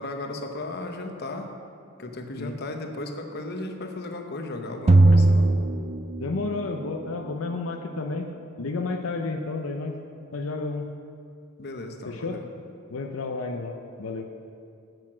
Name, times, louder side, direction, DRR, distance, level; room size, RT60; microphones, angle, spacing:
voice 1, 0.0-1.5 2.0-5.5 11.6-12.4, left 2 dB, 50° left, 4 dB, 0.9 m, -35 dB
sound 1, 4.9-6.7, right 2 dB, 30° right, 0.4 m, -18 dB
voice 2, 6.2-8.3 8.6-10.0 10.3-10.9 12.0-12.4 12.9-14.3, left 3 dB, 80° left, 3 dB, 0.6 m, -31 dB
8.9 x 8.1 x 6.1 m, 2.4 s
head